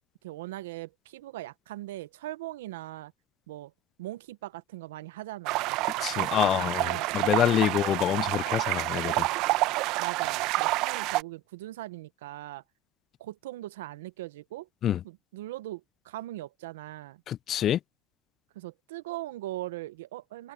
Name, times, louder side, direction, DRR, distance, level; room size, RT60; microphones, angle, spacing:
voice 1, 0.2-3.1 3.5-3.7 4.0-8.0 10.0-12.6 13.2-14.7 15.0-17.2 18.5-20.5, right 16 dB, 90° right, 0.9 m, -40 dB
sound 1, 5.5-11.2, right 19 dB, 65° right, 0.8 m, -28 dB
voice 2, 6.0-6.8 7.1-9.3 14.8-15.0 17.3-17.8, left 11 dB, 45° left, 0.4 m, -26 dB
open air
supercardioid pair, 105°, 0 cm